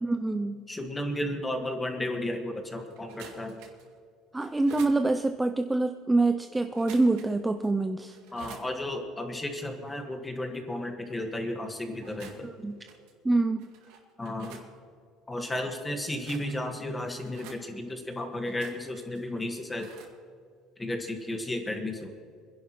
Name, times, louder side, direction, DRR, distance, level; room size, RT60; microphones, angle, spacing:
voice 1, 0.0-0.6 4.3-8.2 12.4-12.8 13.2-13.7, right 2 dB, 10° right, 7 dB, 0.4 m, -26 dB
voice 2, 0.7-3.6 8.3-12.5 14.2-14.6 15.3-19.9 20.8-22.1, left 1 dB, 10° left, 4 dB, 1.6 m, -33 dB
sound 1, 2.9-3.9 4.4-5.0 6.7-7.4 7.6-7.7 8.1-8.7 11.9-12.5 12.9-13.1 13.6-14.7 16.0-16.8 17.2-17.6 18.4-19.2 19.8-20.1, right 6 dB, 80° right, 2.4 m, -48 dB
26.0 x 11.0 x 3.1 m, 2.2 s
cardioid pair, 140°, 0 cm